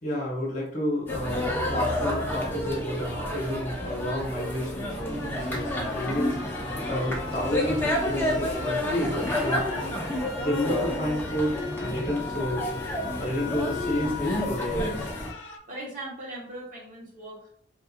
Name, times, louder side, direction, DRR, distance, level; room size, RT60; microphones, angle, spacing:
voice 1, 0.0-9.6 10.4-15.1, left 1 dB, 45° left, -3 dB, 1.0 m, -31 dB
sound 1, 1.1-15.3, left 1 dB, 10° left, 0.6 m, -30 dB
sound 2, 4.0-15.6, left 6 dB, 80° left, 0.5 m, -41 dB
voice 2, 15.7-17.5, right 1 dB, 45° right, -5 dB, 1.3 m, -39 dB
3.6 x 2.7 x 2.5 m, 0.65 s
head